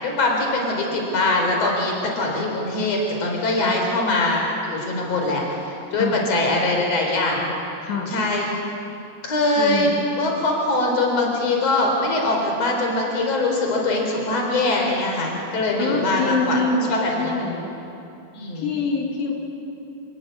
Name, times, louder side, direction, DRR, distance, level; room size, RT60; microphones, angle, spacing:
voice 1, 0.0-5.4 5.9-7.5 8.1-8.5 9.2-16.6 16.9-17.4 18.3-18.7, left 2 dB, 40° left, 0 dB, 5.1 m, -22 dB
voice 2, 9.6-9.9 15.8-17.7 18.6-19.3, left 4 dB, 90° left, -1 dB, 4.9 m, -25 dB
26.5 x 16.5 x 9.7 m, 2.8 s
omnidirectional pair, 4.8 m